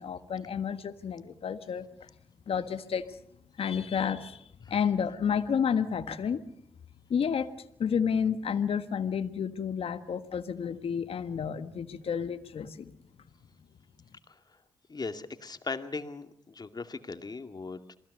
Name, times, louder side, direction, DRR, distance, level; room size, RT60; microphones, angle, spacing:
voice 1, 0.0-1.9 2.5-3.0 3.6-6.4 7.1-7.5 7.8-12.9, left 7 dB, 55° left, 10 dB, 1.5 m, -30 dB
voice 2, 14.9-18.0, left 4 dB, 35° left, 8 dB, 2.4 m, -38 dB
27.5 x 20.0 x 6.7 m, 0.72 s
hypercardioid pair, 40°, 12 cm